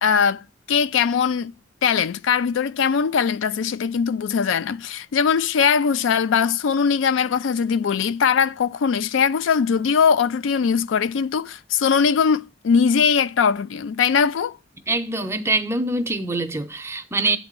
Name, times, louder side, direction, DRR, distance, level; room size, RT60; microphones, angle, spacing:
voice 1, 0.0-1.5 1.8-14.6, left 6 dB, 85° left, 0.4 m, -21 dB
voice 2, 14.9-17.4, right 2 dB, 15° right, 0.7 m, -24 dB
7.9 x 4.0 x 6.6 m
head